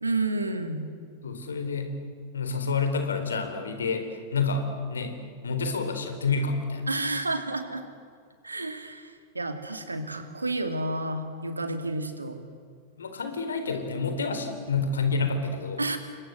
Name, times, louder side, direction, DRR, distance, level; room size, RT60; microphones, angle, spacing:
voice 1, 0.0-0.9 6.9-7.8 8.4-12.4 15.8-16.0, right 2 dB, 80° right, 7 dB, 2.8 m, -30 dB
voice 2, 1.2-1.9 2.3-5.1 5.4-6.9 13.0-15.8, left 4 dB, 70° left, 7 dB, 4.1 m, -28 dB
29.5 x 25.0 x 8.0 m, 2.1 s
figure-of-eight pair, 90°, 0 cm